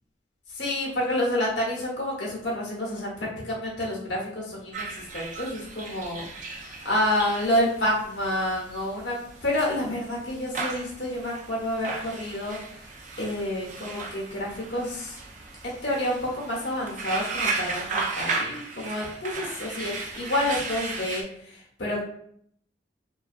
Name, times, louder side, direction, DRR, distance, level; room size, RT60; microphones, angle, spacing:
voice 1, 0.5-4.9 5.1-6.3 6.5-12.6 13.2-15.2 15.6-22.0, left 1 dB, 65° left, -4 dB, 0.8 m, -29 dB
sound 1, 4.7-21.2, right 4 dB, 45° right, 0.4 m, -35 dB
2.3 x 2.2 x 2.4 m, 0.65 s
head